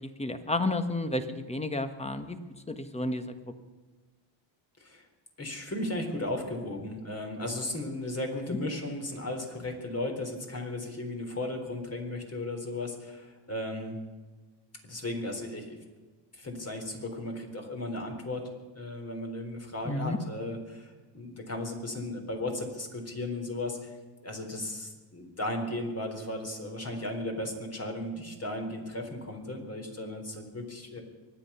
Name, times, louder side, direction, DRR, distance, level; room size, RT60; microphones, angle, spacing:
voice 1, 0.2-2.4 2.7-3.5 8.5-8.6 19.8-20.2, left 2 dB, 15° left, 9 dB, 1.4 m, -31 dB
voice 2, 5.4-14.0 14.8-15.8 16.3-18.5 18.7-23.9 24.2-31.0, left 1 dB, 30° left, 3 dB, 4.0 m, -35 dB
24.0 x 9.8 x 5.7 m, 1.3 s
cardioid pair, 90°, 48 cm